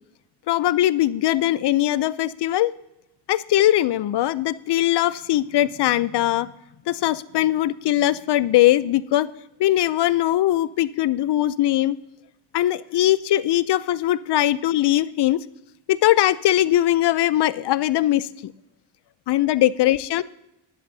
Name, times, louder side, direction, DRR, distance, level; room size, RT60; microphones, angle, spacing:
voice 1, 0.5-2.7 3.3-6.5 6.9-9.3 9.6-12.0 12.5-15.4 15.9-18.5 19.3-20.2, left 14 dB, 55° left, 17 dB, 0.6 m, -20 dB
16.5 x 10.5 x 2.8 m, 0.88 s
cardioid pair, 110°, 48 cm